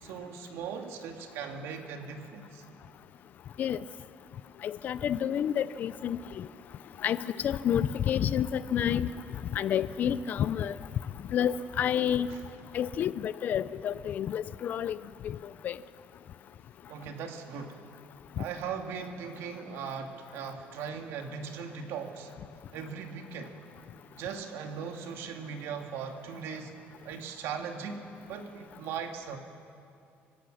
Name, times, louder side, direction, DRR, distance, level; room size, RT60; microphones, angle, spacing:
voice 1, 0.0-2.6 12.3-12.4 16.9-17.9 18.4-22.3 22.7-23.6 24.1-26.7 27.0-29.4, right 6 dB, 80° right, 4 dB, 2.0 m, -39 dB
voice 2, 4.6-6.5 7.0-9.1 9.5-10.7 11.3-12.3 12.7-15.0 15.2-15.4 15.6-15.8 18.4-18.5, left 9 dB, 40° left, 17 dB, 0.4 m, -29 dB
26.0 x 16.0 x 6.4 m, 2.5 s
cardioid pair, 175°, 4 cm